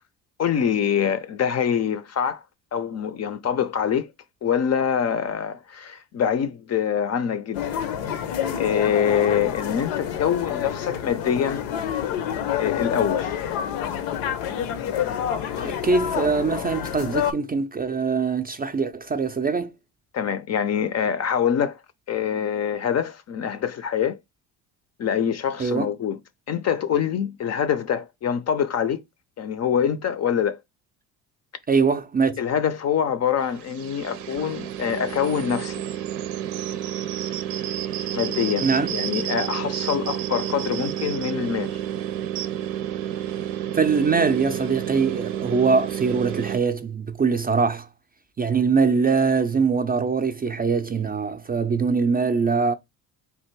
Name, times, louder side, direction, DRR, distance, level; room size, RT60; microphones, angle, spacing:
voice 1, 0.4-2.4 2.7-4.1 4.4-7.8 8.1-11.6 12.6-13.4 20.1-21.8 22.1-24.2 25.0-26.2 26.5-29.0 29.4-30.6 32.4-35.8 38.1-41.8, left 8 dB, 35° left, 0.5 m, -25 dB
sound 1, 7.6-17.3, left 9 dB, 80° left, 0.7 m, -28 dB
voice 2, 15.6-19.7 25.6-25.9 31.7-32.4 38.6-38.9 43.7-47.9 48.4-52.7, right 5 dB, 20° right, 0.4 m, -22 dB
sound 2, 33.4-46.6, right 11 dB, 85° right, 0.6 m, -30 dB
3.3 x 2.5 x 4.4 m
supercardioid pair, 70°, 44 cm